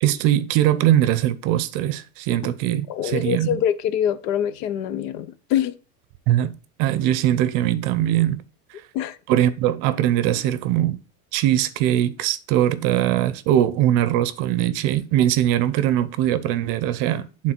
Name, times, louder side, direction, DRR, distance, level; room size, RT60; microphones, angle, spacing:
voice 1, 0.0-3.6 6.3-6.5 6.8-8.4 9.3-11.0 11.3-17.5, right 12 dB, 45° right, 0.6 m, -21 dB
voice 2, 2.9-5.8 8.9-9.2, left 10 dB, 75° left, 0.8 m, -24 dB
8.8 x 3.7 x 4.4 m
supercardioid pair, 145°, 48 cm